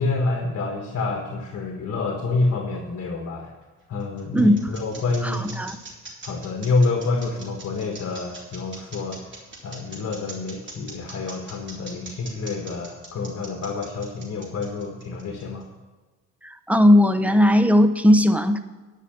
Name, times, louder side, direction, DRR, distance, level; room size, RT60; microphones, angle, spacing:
voice 1, 0.0-3.5 3.9-5.5 6.2-9.4 9.6-15.6, left 3 dB, 55° left, 2 dB, 1.5 m, -27 dB
sound 1, 3.6-15.6, right 3 dB, 40° right, 3.5 m, -42 dB
voice 2, 5.2-5.8 16.4-18.6, left 1 dB, 5° right, 10 dB, 0.8 m, -17 dB
11.0 x 5.8 x 7.9 m, 1.3 s
cardioid pair, 90°, 30 cm